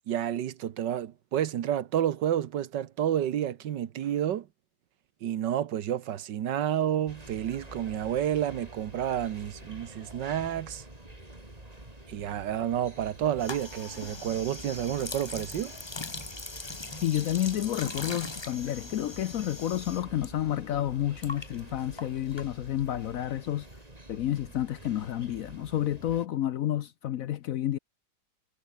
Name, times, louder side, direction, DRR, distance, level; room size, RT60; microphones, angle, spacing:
voice 1, 0.1-4.5 5.2-10.8 12.1-15.7, right 10 dB, 80° right, 1.7 m, -30 dB
sound 1, 7.1-26.3, right 1 dB, 20° right, 4.1 m, -48 dB
sound 2, 13.4-20.3 20.5-22.9, left 3 dB, 20° left, 1.0 m, -41 dB
voice 2, 17.0-23.7 24.1-27.8, left 12 dB, 65° left, 0.9 m, -30 dB
omnidirectional pair, 1.9 m